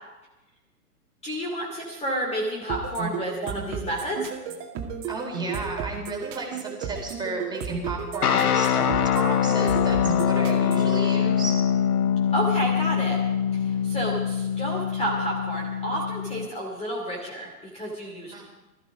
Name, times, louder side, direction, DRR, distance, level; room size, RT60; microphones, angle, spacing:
voice 1, 1.2-4.3 12.3-13.2 13.5-18.4, right 1 dB, 15° left, -1 dB, 2.8 m, -30 dB
sound 1, 2.7-11.0, right 7 dB, 30° right, 2.3 m, -33 dB
voice 2, 5.1-11.5 18.3-18.4, right 2 dB, 10° right, 0 dB, 4.0 m, -34 dB
sound 2, 8.2-16.5, left 8 dB, 70° left, 1.2 m, -24 dB
20.0 x 14.0 x 5.0 m, 1.1 s
figure-of-eight pair, 115°, 47 cm